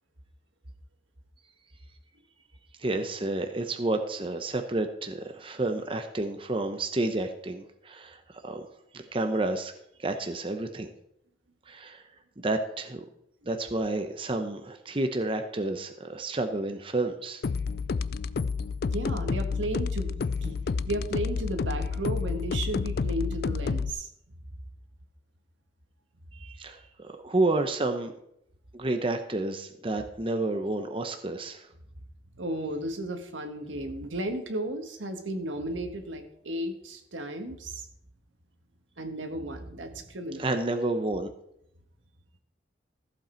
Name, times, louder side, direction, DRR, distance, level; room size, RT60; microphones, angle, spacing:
voice 1, 2.8-8.6 8.9-9.7 10.0-10.9 11.7-12.1 12.4-13.0 13.5-17.4 26.3-28.1 28.7-31.7 40.4-41.3, right 2 dB, 30° right, 6 dB, 0.8 m, -30 dB
sound 1, 17.4-23.9, left 5 dB, 55° left, 0.3 m, -30 dB
voice 2, 18.8-24.1 32.4-37.9 39.0-40.5, right 1 dB, 90° right, 5 dB, 1.6 m, -34 dB
14.5 x 7.9 x 4.5 m, 0.76 s
head